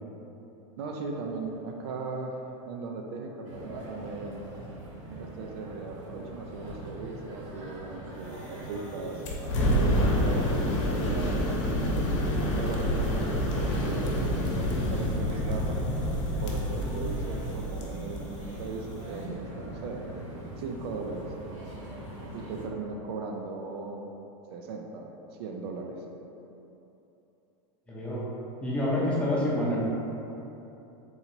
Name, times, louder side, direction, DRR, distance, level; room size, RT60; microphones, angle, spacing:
voice 1, 0.8-4.4 5.2-9.2 9.7-11.5 12.6-15.8 16.4-20.1 20.6-21.3 22.3-24.1 24.5-25.1 25.4-26.0, right 3 dB, 50° right, 1 dB, 0.4 m, -38 dB
sound 1, 3.4-22.7, right 2 dB, 80° right, 1.1 m, -42 dB
sound 2, 9.2-19.2, equal, 65° left, 0.9 m, -28 dB
voice 2, 27.9-28.2 28.6-29.8, left 1 dB, 5° left, -7 dB, 0.6 m, -27 dB
3.9 x 2.8 x 4.3 m, 3.0 s
supercardioid pair, 170°, 17 cm